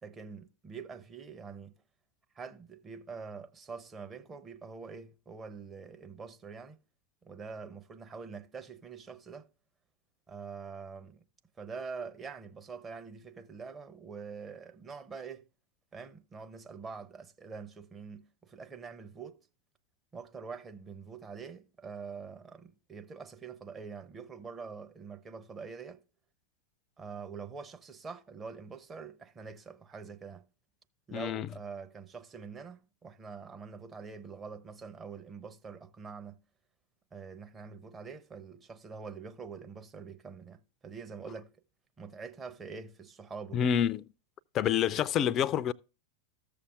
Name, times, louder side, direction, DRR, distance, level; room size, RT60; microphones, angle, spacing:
voice 1, 0.0-1.8 2.3-6.8 7.2-9.5 10.3-11.2 11.6-15.5 15.9-19.4 20.1-26.0 27.0-30.5 31.1-36.4 37.1-41.5 42.0-43.7, right 5 dB, 20° right, 0.8 m, -45 dB
voice 2, 31.1-31.5 43.5-44.0 44.5-45.7, left 9 dB, 30° left, 0.4 m, -27 dB
14.5 x 6.9 x 2.4 m
figure-of-eight pair, 90°, 0 cm